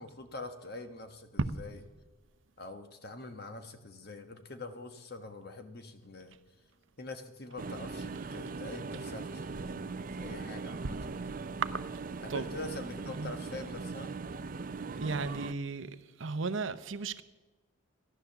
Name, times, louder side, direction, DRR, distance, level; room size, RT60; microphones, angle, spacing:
voice 1, 0.0-1.8 2.6-6.4 7.0-11.2 12.2-14.2, left 2 dB, 50° left, 1.2 m, -44 dB
sound 1, 7.6-15.5, right 4 dB, 40° right, 0.4 m, -40 dB
voice 2, 15.0-15.9 16.2-17.2, right 4 dB, 65° right, 0.8 m, -35 dB
15.0 x 11.0 x 6.9 m
head